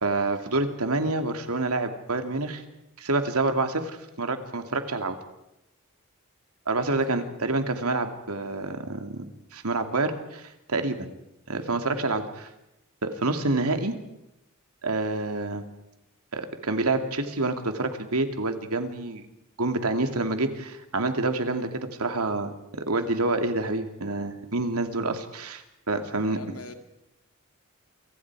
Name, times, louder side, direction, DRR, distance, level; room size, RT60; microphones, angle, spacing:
voice 1, 0.0-2.6 3.0-5.2 6.7-11.1 11.5-12.5 13.0-14.0 14.8-15.6 16.3-19.2 19.6-26.4, right 2 dB, 85° right, 7 dB, 2.6 m, -28 dB
voice 2, 26.0-26.7, left 3 dB, 80° left, 6 dB, 2.4 m, -45 dB
28.0 x 25.0 x 4.9 m, 0.88 s
head